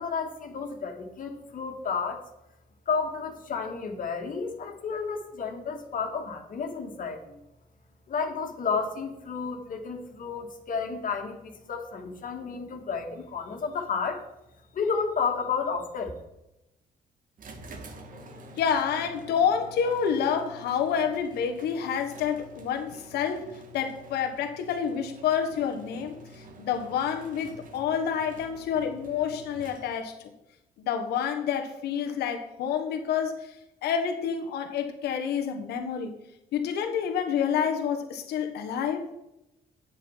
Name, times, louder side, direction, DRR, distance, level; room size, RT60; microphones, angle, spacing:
voice 1, 0.0-2.2 2.9-7.4 8.1-14.2 14.7-16.1, left 5 dB, 55° left, 3 dB, 2.1 m, -31 dB
sound 1, 17.4-30.2, equal, 55° right, 2.1 m, -48 dB
voice 2, 18.6-23.5 23.7-30.3 30.8-33.5 33.8-36.2 36.5-39.1, left 7 dB, 75° left, 5 dB, 1.3 m, -28 dB
9.1 x 7.8 x 5.7 m, 0.90 s
supercardioid pair, 70°, 17 cm